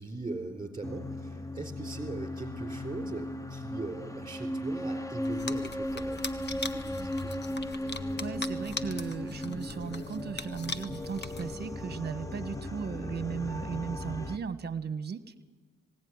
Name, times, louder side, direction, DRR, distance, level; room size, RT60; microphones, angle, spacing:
voice 1, 0.0-7.3, right 3 dB, 15° right, 5 dB, 4.2 m, -40 dB
sound 1, 0.8-14.4, left 1 dB, 10° left, 1.0 m, -36 dB
sound 2, 5.2-11.8, left 4 dB, 35° left, 1.2 m, -41 dB
voice 2, 8.2-15.4, right 6 dB, 35° right, 12 dB, 1.3 m, -36 dB
19.5 x 17.0 x 9.7 m, 1.3 s
cardioid pair, 90°, 30 cm